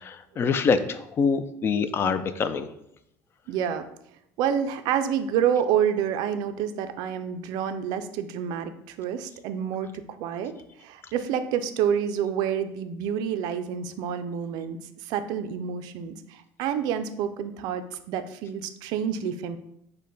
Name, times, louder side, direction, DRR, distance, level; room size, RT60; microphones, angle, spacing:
voice 1, 0.0-2.7, left 5 dB, 30° left, 11 dB, 0.3 m, -25 dB
voice 2, 3.5-3.9 4.4-10.5 10.8-19.6, right 8 dB, 65° right, 10 dB, 0.4 m, -28 dB
5.2 x 2.1 x 3.8 m, 0.77 s
cardioid pair, 120°, 7 cm